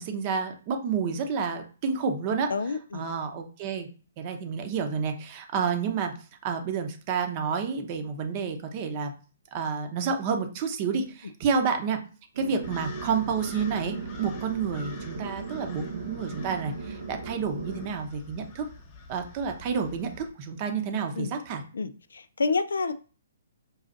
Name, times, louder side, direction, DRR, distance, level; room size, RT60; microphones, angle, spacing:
voice 1, 0.0-2.5 2.9-3.9 4.2-6.1 6.4-9.1 9.5-12.0 12.4-18.7 19.1-21.6, right 6 dB, 35° right, 6 dB, 0.8 m, -29 dB
voice 2, 2.5-3.1 21.2-21.3 21.7-22.9, left 4 dB, 80° left, 12 dB, 0.3 m, -29 dB
sound 1, 12.3-17.9, right 5 dB, 70° right, 0.5 m, -38 dB
sound 2, 12.6-20.3, left 2 dB, 35° left, 0.9 m, -46 dB
5.4 x 2.4 x 2.5 m, 0.37 s
hypercardioid pair, 140°, 0 cm